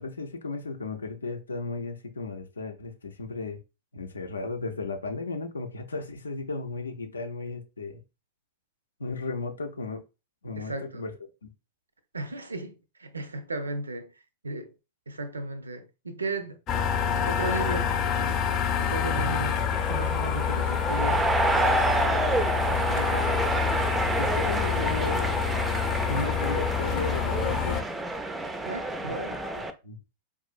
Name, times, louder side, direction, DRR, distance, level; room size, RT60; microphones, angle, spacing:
voice 1, 0.0-3.6 3.9-8.0 9.0-10.0 10.4-11.1 11.4-11.5 19.2-19.4 24.2-25.4 26.1-27.8 29.0-29.1 29.5-30.0, left 3 dB, 75° left, 0.5 m, -35 dB
voice 2, 10.6-11.1 12.1-14.1 14.4-14.7 15.1-16.6 17.2-18.4 18.8-19.5 19.9-22.2 22.7-23.5 28.7-29.4, right 2 dB, 75° right, 0.5 m, -35 dB
sound 1, 16.7-27.8, left 8 dB, 35° left, 0.6 m, -27 dB
sound 2, 19.7-29.7, right 2 dB, 10° right, 0.4 m, -28 dB
4.6 x 2.5 x 2.4 m
figure-of-eight pair, 90°, 0 cm